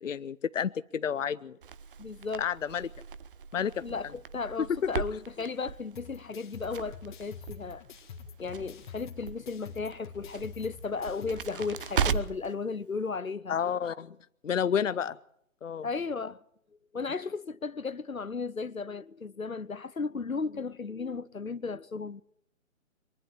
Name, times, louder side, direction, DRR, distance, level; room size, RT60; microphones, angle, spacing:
voice 1, 0.0-1.6 2.4-2.9 3.5-3.8 13.5-14.2 14.4-15.2 15.6-15.9, left 8 dB, 65° left, 0.7 m, -30 dB
Crackle, 1.6-12.5, right 7 dB, 40° right, 1.0 m, -38 dB
voice 2, 2.0-2.5 3.8-7.8 8.4-13.6 15.8-16.4 16.9-22.2, left 4 dB, 90° left, 1.0 m, -35 dB
sound 1, 6.0-12.2, left 6 dB, 35° left, 2.3 m, -47 dB
23.5 x 11.5 x 9.7 m
figure-of-eight pair, 140°, 40 cm